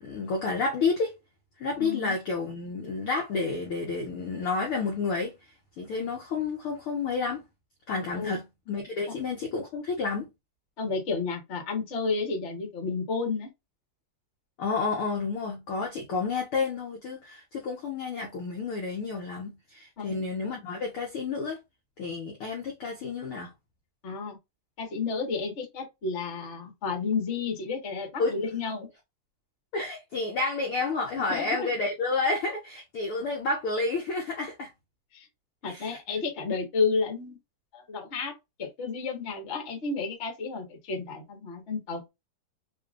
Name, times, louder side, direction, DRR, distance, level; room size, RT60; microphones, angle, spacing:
voice 1, 0.0-1.1 1.6-5.3 5.8-7.4 7.9-10.3 14.6-21.6 22.0-23.5 28.2-28.4 29.7-34.7 35.7-36.0, left 4 dB, 80° left, 1.2 m, -30 dB
voice 2, 1.8-2.1 8.1-8.4 10.8-13.5 20.0-20.2 24.0-24.4 24.8-28.9 31.3-31.7 35.1-35.3 35.6-37.4 37.7-38.3 38.6-42.1, left 4 dB, 60° left, 0.7 m, -31 dB
5.3 x 2.6 x 2.5 m
omnidirectional pair, 4.0 m